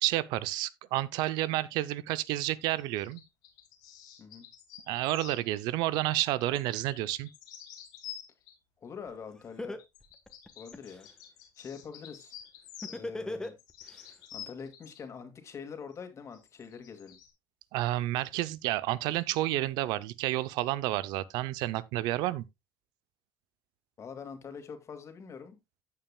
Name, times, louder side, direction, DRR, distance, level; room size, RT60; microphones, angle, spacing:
voice 1, 0.0-3.2 4.9-7.3 17.7-22.4, right 16 dB, 90° right, 0.6 m, -30 dB
sound 1, 2.8-5.4 6.5-8.6 9.8-13.1 13.4-15.0 15.9-16.0 16.3-17.3, left 10 dB, 90° left, 3.0 m, -49 dB
voice 2, 8.8-9.8 10.6-11.1 11.6-12.4 12.9-13.6 14.1-17.2 24.0-25.6, left 6 dB, 45° left, 2.3 m, -44 dB
Laughter, 9.1-9.2 9.6-11.0 12.8-14.0, left 1 dB, 10° left, 1.3 m, -37 dB
16.0 x 5.7 x 2.2 m
cardioid pair, 100°, 7 cm